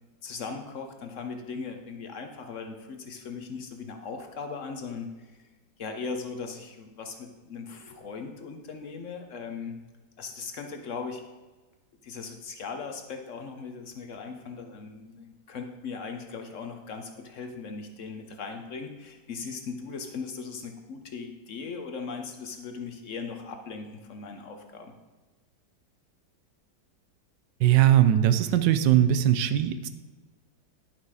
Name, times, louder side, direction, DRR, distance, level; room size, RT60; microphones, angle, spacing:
voice 1, 0.2-5.3 5.8-9.8 10.2-11.2 12.0-24.9, left 5 dB, 55° left, 5 dB, 0.9 m, -38 dB
voice 2, 27.6-29.9, right 11 dB, 85° right, 12 dB, 1.3 m, -20 dB
10.5 x 5.8 x 4.8 m, 1.2 s
omnidirectional pair, 1.9 m